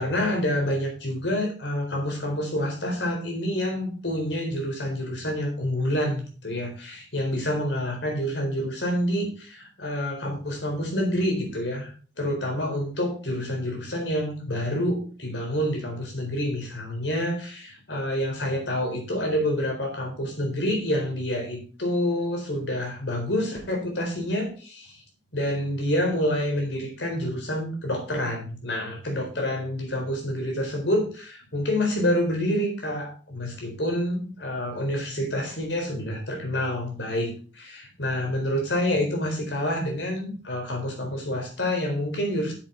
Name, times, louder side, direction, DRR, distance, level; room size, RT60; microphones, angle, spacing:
voice 1, 0.0-25.0 25.3-42.5, left 1 dB, 85° left, 2 dB, 4.3 m, -28 dB
9.5 x 7.6 x 4.7 m, 0.38 s
head